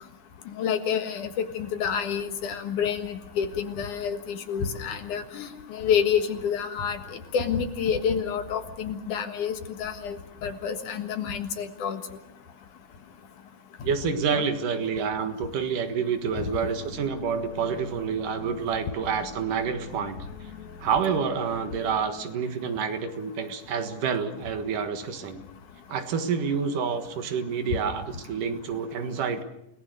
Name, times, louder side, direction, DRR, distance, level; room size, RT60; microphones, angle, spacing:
voice 1, 0.6-7.0 7.3-10.2 10.4-12.0 14.3-14.4 16.4-16.5, left 7 dB, 65° left, 7 dB, 3.0 m, -28 dB
voice 2, 13.8-20.2 20.8-25.4 25.9-29.4, right 6 dB, 75° right, 7 dB, 3.1 m, -28 dB
sound 1, 16.7-22.3, left 5 dB, 35° left, 1.3 m, -45 dB
29.5 x 19.0 x 6.6 m, 0.82 s
omnidirectional pair, 3.9 m